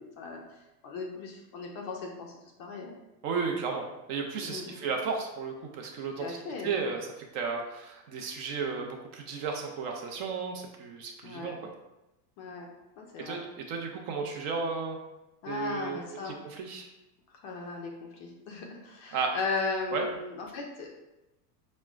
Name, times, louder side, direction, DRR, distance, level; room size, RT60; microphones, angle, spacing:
voice 1, 0.0-2.3 2.6-3.0 4.3-4.9 6.2-6.8 11.2-11.5 12.4-12.7 13.0-13.4 15.4-16.4 17.3-20.9, left 4 dB, 35° left, 0 dB, 0.4 m, -37 dB
voice 2, 3.2-6.4 6.6-7.0 7.3-11.6 13.2-13.4 13.7-15.0 15.5-16.0 16.3-16.9 19.1-19.3 19.9-20.1, right 5 dB, 40° right, 2 dB, 0.4 m, -33 dB
5.9 x 2.1 x 2.3 m, 0.96 s
supercardioid pair, 145°, 48 cm